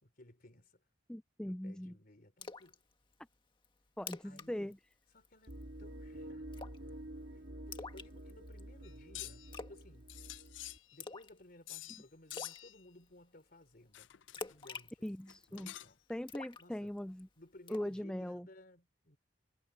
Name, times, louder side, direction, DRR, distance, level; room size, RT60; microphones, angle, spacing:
voice 1, 0.0-0.8 1.4-2.8 4.2-4.8 5.1-5.5 5.8-6.5 6.8-7.0 7.3-10.1 10.9-15.1 15.5-16.0 16.6-16.9 17.4-19.2, left 1 dB, 50° left, 3.7 m, -59 dB
voice 2, 1.1-1.9 4.0-4.8 15.0-15.7 16.1-17.3 17.7-18.5, equal, 5° left, 0.3 m, -40 dB
Splash splatter, 2.4-2.7 3.1-3.2 3.6-3.7 4.0-4.5 4.7-4.9 5.2-5.6 6.5-6.9 7.7-8.6 9.5-9.8 10.1-10.5 11.0-11.4 11.7-11.8 12.3-12.6 14.3-15.6 16.3-17.2 17.7-17.9, left 4 dB, 25° left, 1.7 m, -46 dB
sound 1, 5.5-10.8, right 1 dB, 65° right, 1.9 m, -49 dB
sound 2, 8.8-9.5 10.1-11.2 11.7-12.0 12.3-12.8 13.9-14.6 15.3-16.1, left 16 dB, 90° left, 0.5 m, -48 dB
head